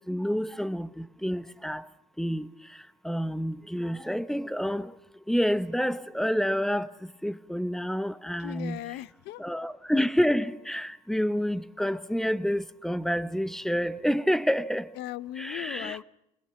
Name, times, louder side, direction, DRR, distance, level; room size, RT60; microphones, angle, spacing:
voice 1, 0.0-1.9 2.2-5.0 5.3-8.8 9.4-14.9 15.4-16.0, equal, ahead, 0.9 m, -28 dB
voice 2, 8.4-9.4 15.0-16.0, left 15 dB, 85° left, 0.7 m, -37 dB
21.0 x 18.5 x 7.1 m
cardioid pair, 110°, 17 cm